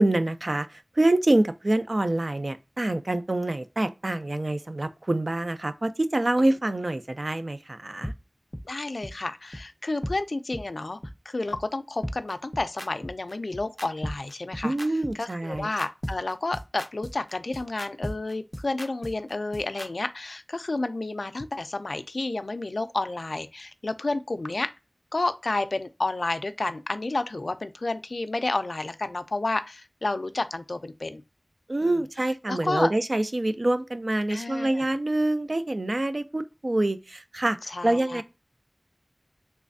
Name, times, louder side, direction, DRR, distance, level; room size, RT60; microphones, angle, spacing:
voice 1, 0.0-8.1 14.6-15.7 31.7-37.6 37.8-38.2, right 1 dB, 65° right, 0.4 m, -26 dB
sound 1, 8.0-8.1 8.5-8.6 9.0-9.1 9.5-9.6 10.0-10.1 10.5-10.6 11.0-11.1 11.5-11.6 12.0-19.9, equal, 15° left, 0.4 m, -35 dB
voice 2, 8.7-11.0 11.3-14.7 15.2-24.7 25.1-31.2 31.8-32.0 32.5-32.9 34.3-34.9 37.7-38.2, left 2 dB, 90° left, 0.3 m, -30 dB
3.3 x 3.1 x 2.5 m
wide cardioid pair, 45°, 0 cm